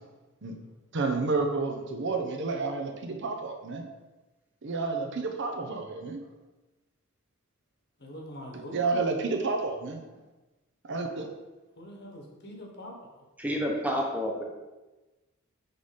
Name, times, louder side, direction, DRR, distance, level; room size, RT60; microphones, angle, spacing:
voice 1, 0.9-3.9 4.6-6.2 8.7-10.0 10.9-11.3, right 3 dB, 60° right, 4 dB, 0.8 m, -30 dB
voice 2, 8.0-8.8 11.8-12.9, equal, 55° left, 1 dB, 1.3 m, -44 dB
voice 3, 13.4-14.4, equal, 5° right, 0 dB, 0.9 m, -29 dB
5.5 x 4.1 x 5.1 m, 1.1 s
head